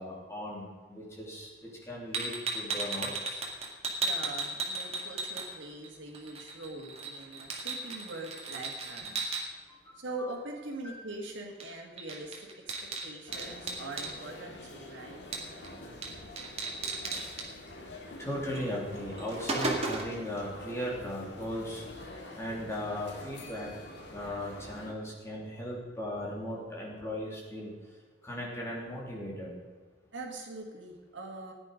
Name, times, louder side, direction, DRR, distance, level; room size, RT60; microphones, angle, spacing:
voice 1, 0.0-1.5 1.8-3.4 10.2-10.3 10.8-11.0 18.2-21.8 22.3-23.7 24.1-27.7 28.2-29.5, equal, 15° left, -4 dB, 3.0 m, -37 dB
sound 1, 2.1-5.9 6.1-9.4 11.6-11.7 12.0-14.1 15.3-15.7 16.0-16.1 16.4-17.5 18.5-18.7 19.0-20.2, right 3 dB, 30° right, 2.0 m, -35 dB
voice 2, 4.0-9.3 10.0-12.7 13.0-15.2 30.1-31.5, right 2 dB, 75° right, 1 dB, 2.2 m, -42 dB
sound 2, 13.3-24.9, left 2 dB, 60° left, 2.1 m, -47 dB
15.5 x 10.0 x 5.2 m, 1.4 s
head